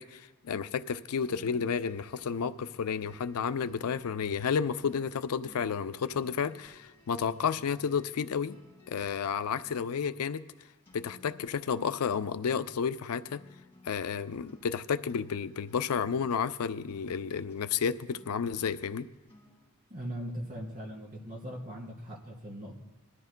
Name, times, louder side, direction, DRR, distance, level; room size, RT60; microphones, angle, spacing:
voice 1, 0.0-8.6 8.9-10.4 10.9-13.4 13.8-19.1, left 6 dB, 85° left, 11 dB, 0.5 m, -31 dB
sound 1, 1.2-19.7, left 2 dB, 10° left, 5.1 m, -58 dB
voice 2, 19.9-22.8, equal, 40° right, -3 dB, 2.9 m, -40 dB
21.5 x 13.0 x 2.2 m, 1.1 s
head